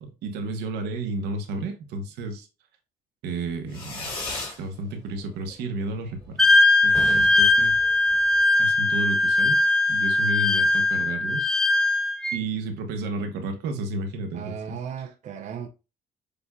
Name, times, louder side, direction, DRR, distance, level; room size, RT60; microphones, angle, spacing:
voice 1, 0.0-2.5 3.2-4.1 4.6-7.8 8.6-9.6 9.9-11.6 12.3-14.8, right 2 dB, 80° right, 1.1 m, -32 dB
Fireworks, 3.7-4.6 5.0-5.5 5.8-5.9 6.1-6.3 6.5-6.6 6.8-8.5, left 2 dB, 30° left, 2.1 m, -36 dB
Wind instrument woodwind instrument, 6.4-12.4, left 2 dB, 5° left, 0.5 m, -20 dB
voice 2, 14.3-15.7, right 7 dB, 45° right, 0.6 m, -36 dB
6.7 x 2.6 x 2.3 m
cardioid pair, 110°, 17 cm